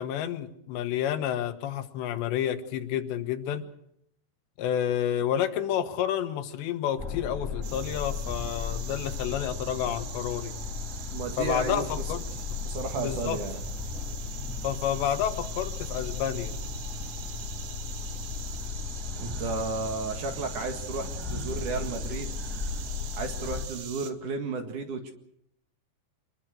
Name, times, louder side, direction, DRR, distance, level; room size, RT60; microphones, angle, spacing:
voice 1, 0.0-3.7 4.6-10.5 11.4-12.2 13.0-13.4 14.6-16.5, left 10 dB, 85° left, 9 dB, 3.6 m, -30 dB
sound 1, 7.0-23.7, left 5 dB, ahead, 3.3 m, -36 dB
sound 2, 7.6-24.1, right 9 dB, 70° right, 3.9 m, -43 dB
voice 2, 11.1-11.9 12.6-13.6 19.2-22.3 23.1-25.1, right 4 dB, 55° right, 6 dB, 2.9 m, -33 dB
25.5 x 21.5 x 6.4 m, 0.74 s
omnidirectional pair, 5.0 m